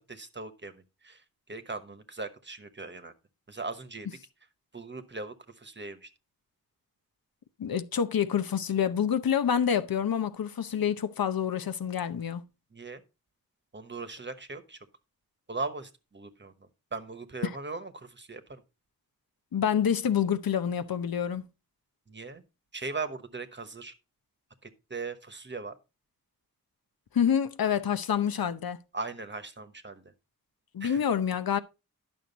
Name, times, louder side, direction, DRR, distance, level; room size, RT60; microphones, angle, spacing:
voice 1, 0.1-1.2 1.5-3.1 3.5-4.1 4.7-6.1 12.7-13.0 13.7-14.8 15.5-16.5 16.9-18.6 22.1-22.4 22.7-23.9 24.9-25.7 28.9-30.0 30.8-31.0, right 3 dB, 30° right, 1.1 m, -39 dB
voice 2, 7.6-12.4 17.4-17.6 19.5-21.4 27.1-28.8 30.7-31.6, left 8 dB, 75° left, 0.8 m, -27 dB
11.0 x 6.2 x 4.0 m
wide cardioid pair, 110°, 35 cm